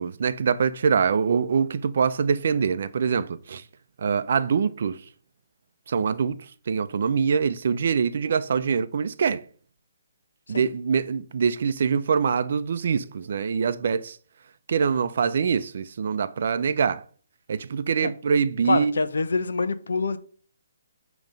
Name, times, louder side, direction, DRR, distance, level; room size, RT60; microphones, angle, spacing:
voice 1, 0.0-3.6 4.0-5.0 5.9-6.4 6.7-9.4 10.5-14.2 14.7-17.0 17.5-18.9, right 6 dB, 55° right, 0.5 m, -24 dB
voice 2, 18.6-20.2, left 3 dB, 80° left, 0.8 m, -25 dB
9.0 x 3.1 x 5.1 m
hypercardioid pair, 155°, 0 cm